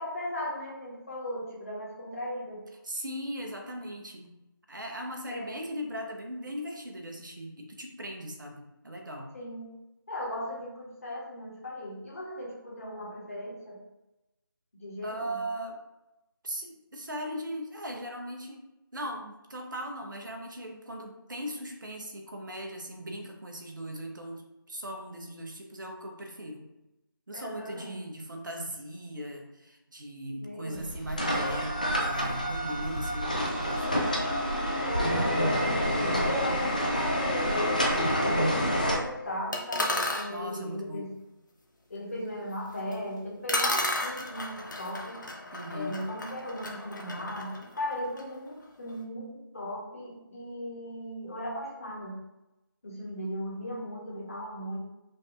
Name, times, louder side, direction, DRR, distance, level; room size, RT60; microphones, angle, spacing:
voice 1, 0.0-2.7 5.3-5.6 9.3-9.7 10.1-13.8 14.8-15.4 27.3-28.0 30.4-30.9 32.5-32.7 34.8-37.9 38.2-41.1 41.9-45.2 45.7-52.2 52.8-54.8, equal, 40° left, -4 dB, 1.2 m, -37 dB
voice 2, 2.8-4.4 4.7-9.3 15.0-15.8 16.4-26.6 27.3-34.3 38.2-38.6 40.3-41.1 45.5-46.0, equal, 60° right, 3 dB, 0.9 m, -39 dB
sound 1, 30.7-39.0, equal, 20° left, 0.3 m, -28 dB
sound 2, 39.5-40.3 42.9-43.0 43.5-48.3, left 1 dB, 55° left, 0.7 m, -33 dB
5.1 x 2.7 x 2.5 m, 0.94 s
figure-of-eight pair, 165°, 12 cm